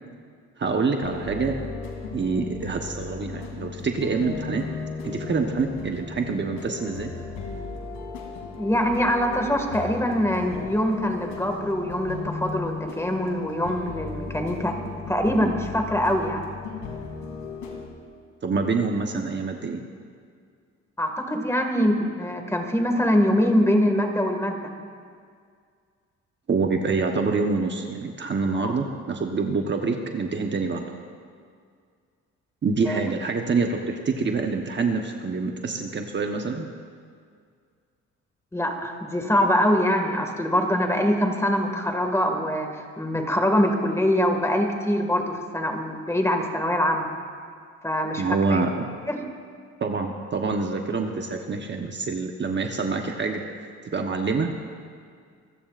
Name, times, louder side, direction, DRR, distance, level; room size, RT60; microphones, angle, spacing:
voice 1, 0.6-1.6 2.1-4.7 5.0-7.1 18.4-19.8 26.5-30.9 32.6-36.7 48.2-48.7 49.8-54.5, right 4 dB, 35° right, 3 dB, 1.1 m, -26 dB
sound 1, 1.0-17.8, left 4 dB, 85° left, 2.7 m, -36 dB
voice 2, 8.6-14.8 15.1-16.4 21.0-24.7 28.6-28.7 32.9-33.0 38.5-47.1 47.8-48.6 49.1-49.2, equal, 10° left, 4 dB, 1.9 m, -24 dB
25.0 x 15.5 x 2.5 m, 2.1 s
cardioid pair, 90°, 30 cm